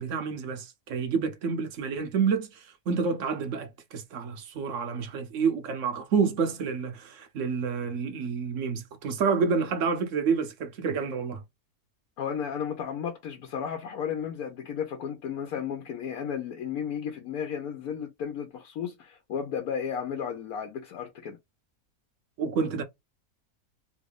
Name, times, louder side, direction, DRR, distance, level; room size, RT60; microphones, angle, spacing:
voice 1, 0.0-11.4 22.4-22.8, right 5 dB, 65° right, 0.9 m, -29 dB
voice 2, 12.2-21.4, left 7 dB, 75° left, 1.2 m, -33 dB
3.0 x 2.6 x 3.2 m
omnidirectional pair, 1.6 m